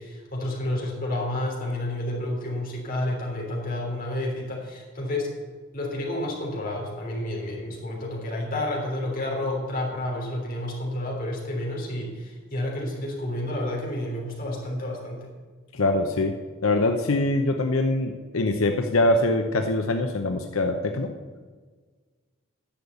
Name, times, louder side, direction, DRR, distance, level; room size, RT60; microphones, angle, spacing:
voice 1, 0.0-5.3 5.7-15.3, left 1 dB, 45° left, -2 dB, 3.2 m, -30 dB
voice 2, 15.7-16.3 16.6-21.1, left 2 dB, 90° left, 5 dB, 0.8 m, -23 dB
10.5 x 7.1 x 8.1 m, 1.5 s
head